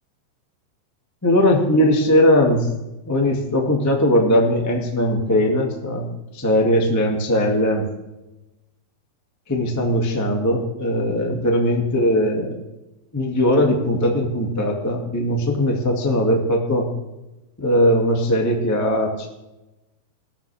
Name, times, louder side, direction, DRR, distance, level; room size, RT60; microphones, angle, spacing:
voice 1, 1.2-2.7 3.1-6.1 6.3-7.9 9.5-12.6 13.1-16.9 17.6-19.3, equal, 10° left, 0 dB, 0.7 m, -19 dB
20.0 x 15.5 x 3.5 m, 0.96 s
omnidirectional pair, 4.9 m